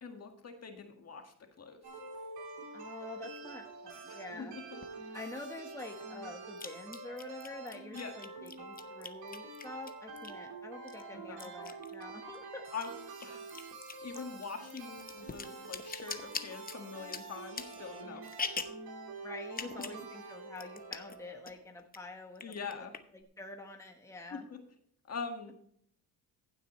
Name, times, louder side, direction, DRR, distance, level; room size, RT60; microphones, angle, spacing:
voice 1, 0.0-1.8 4.1-4.8 7.9-8.1 11.1-11.5 12.7-12.9 13.2-13.5 14.0-18.3 19.6-19.9 22.4-22.9 24.3-24.6 25.1-25.5, left 5 dB, 40° left, 4 dB, 1.8 m, -43 dB
sound 1, 1.8-21.7, right 3 dB, 75° right, 3.4 m, -47 dB
voice 2, 2.7-4.6 5.1-12.6 19.2-22.9 23.1-24.4, left 2 dB, 10° left, 2 dB, 1.3 m, -47 dB
sound 2, 4.8-4.9 6.6-10.5 10.9-12.4 12.7-18.9 19.5-20.0 20.3-20.4 20.6-21.2 21.5-22.0 22.4-23.2, left 5 dB, 25° left, 0.9 m, -43 dB
15.5 x 7.9 x 3.2 m, 0.65 s
cardioid pair, 105°, 38 cm